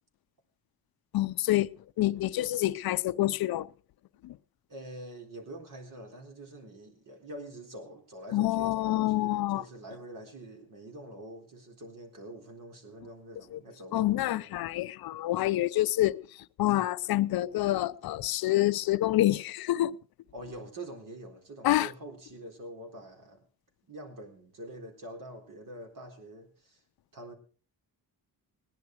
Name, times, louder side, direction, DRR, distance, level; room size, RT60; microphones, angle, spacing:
voice 1, 1.1-1.7 2.0-3.7 4.2-4.4 8.3-9.6 13.5-13.6 13.9-20.0 21.6-21.9, left 15 dB, 75° left, 0.6 m, -27 dB
voice 2, 4.7-14.5 20.3-23.5 23.8-26.8 27.1-27.3, right 1 dB, 60° right, 3.9 m, -45 dB
17.5 x 10.5 x 4.7 m
cardioid pair, 115°, 37 cm